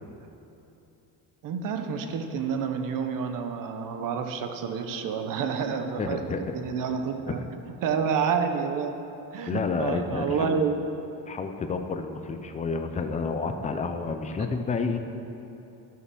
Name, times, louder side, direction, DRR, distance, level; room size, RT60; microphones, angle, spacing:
voice 1, 1.4-9.0 9.3-10.8, right 6 dB, 55° right, 6 dB, 0.9 m, -29 dB
voice 2, 6.0-6.4 7.3-7.5 9.5-10.7 11.3-15.0, left 4 dB, 20° left, 6 dB, 0.5 m, -30 dB
12.0 x 6.7 x 6.2 m, 2.9 s
cardioid pair, 165°, 40 cm